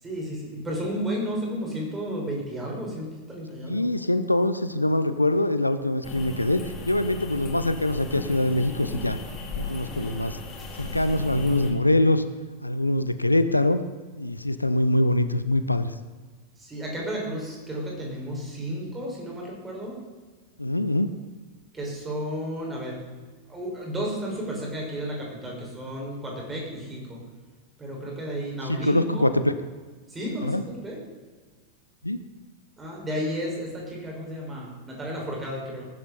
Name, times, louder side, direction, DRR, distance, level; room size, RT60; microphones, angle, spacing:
voice 1, 0.0-3.9 16.6-20.0 21.7-23.0 23.5-27.2 27.8-29.3 30.1-31.0 32.8-35.9, equal, 15° right, -2 dB, 5.8 m, -33 dB
voice 2, 3.6-6.6 6.9-9.2 9.6-10.4 10.8-12.2 12.6-13.8 14.1-15.9 20.6-21.1 28.7-29.5 30.4-30.6 32.0-32.2, left 1 dB, 85° left, 12 dB, 0.7 m, -23 dB
sound 1, 6.0-11.7, left 2 dB, 25° left, 3.4 m, -36 dB
19.5 x 11.5 x 4.3 m, 1.4 s
figure-of-eight pair, 90°, 0 cm